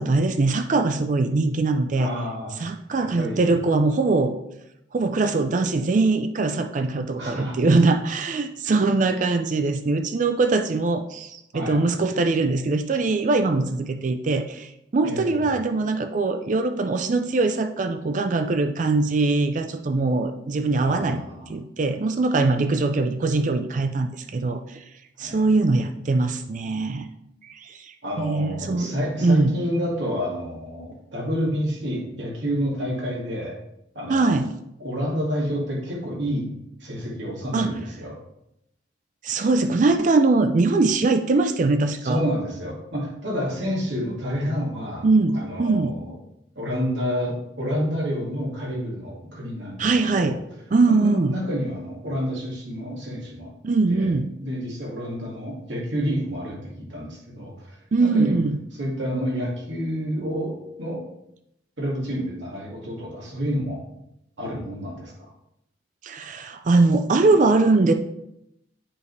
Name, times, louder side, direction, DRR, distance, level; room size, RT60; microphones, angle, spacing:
voice 1, 0.0-2.1 2.6-4.3 4.9-21.2 21.5-24.8 25.2-27.1 27.4-29.0 29.2-29.6 34.1-34.5 37.5-37.7 39.2-42.2 45.0-46.0 49.8-50.4 50.7-51.3 53.6-54.3 57.9-58.6 66.0-67.9, right 3 dB, 40° right, 8 dB, 0.4 m, -22 dB
voice 2, 2.0-2.6 3.0-3.5 7.2-7.6 11.5-11.8 15.0-15.4 20.8-21.5 25.2-25.5 28.0-33.6 33.9-34.3 34.8-36.5 36.8-38.2 42.0-45.1 45.3-46.1 46.6-50.4 50.9-53.5 53.9-54.1 54.4-58.4 58.7-61.0 61.8-63.8 64.4-65.1, equal, 75° right, -3 dB, 2.3 m, -29 dB
8.5 x 5.0 x 3.3 m, 0.82 s
head